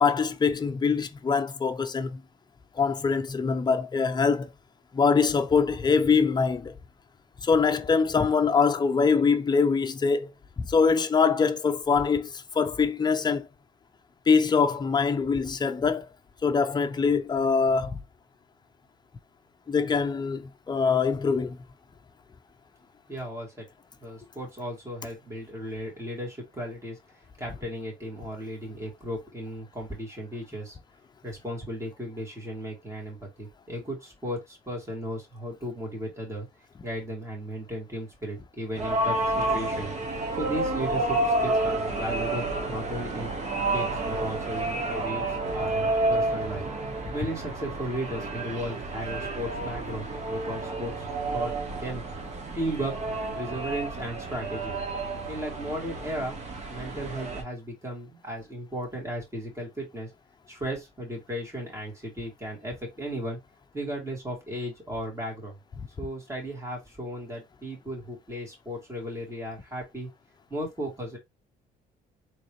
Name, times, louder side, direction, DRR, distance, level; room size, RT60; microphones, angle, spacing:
voice 1, 0.0-2.2 2.8-4.5 4.9-6.7 7.4-13.5 14.3-16.1 16.4-18.0 19.7-21.6, left 5 dB, 25° left, 0.6 m, -24 dB
voice 2, 23.1-23.6 24.0-27.0 27.4-30.8 31.2-36.5 36.8-39.9 40.4-43.3 43.7-46.6 47.1-51.1 51.3-52.0 52.5-54.8 55.3-56.4 56.7-60.1 60.5-63.4 63.7-65.6 66.0-70.1 70.5-71.2, equal, 15° right, 2.8 m, -35 dB
sound 1, 38.8-57.4, right 2 dB, 40° right, 1.3 m, -30 dB
3.9 x 3.3 x 3.2 m
cardioid pair, 110°, 17 cm